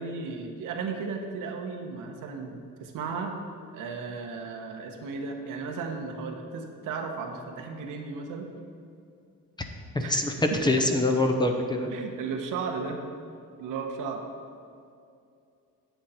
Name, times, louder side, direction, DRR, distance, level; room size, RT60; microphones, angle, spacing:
voice 1, 0.0-3.4 3.7-8.5 10.0-10.8 11.9-13.0 13.6-14.2, right 4 dB, 90° right, 3 dB, 1.2 m, -35 dB
voice 2, 9.9-11.9, left 2 dB, 15° left, 4 dB, 0.7 m, -24 dB
9.4 x 8.0 x 4.4 m, 2.5 s
cardioid pair, 130°, 31 cm